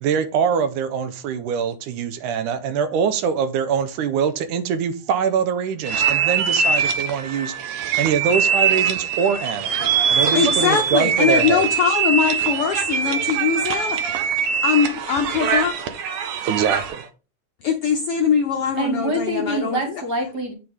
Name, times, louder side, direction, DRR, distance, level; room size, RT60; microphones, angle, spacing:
voice 1, 0.0-7.5 8.0-9.8 10.1-11.6 16.4-17.0, right 7 dB, 85° right, 2.3 m, -23 dB
sound 1, 5.8-17.0, right 6 dB, 65° right, 1.5 m, -22 dB
voice 2, 10.3-14.0 14.6-15.7 17.6-19.8, left 7 dB, 70° left, 1.3 m, -21 dB
voice 3, 18.7-20.5, right 1 dB, 35° right, 2.3 m, -25 dB
8.7 x 6.0 x 3.6 m
omnidirectional pair, 3.6 m